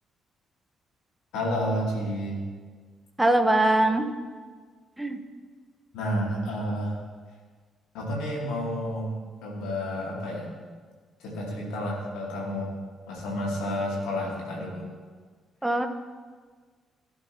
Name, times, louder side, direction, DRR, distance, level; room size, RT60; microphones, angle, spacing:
voice 1, 1.3-2.4 5.9-7.0 7.9-10.5 11.2-12.7 13.1-14.8, equal, 70° left, -3 dB, 2.7 m, -30 dB
voice 2, 3.2-4.1 5.0-5.2 15.6-15.9, right 1 dB, 10° right, 6 dB, 1.2 m, -22 dB
16.0 x 6.9 x 3.0 m, 1.5 s
figure-of-eight pair, 40°, 0 cm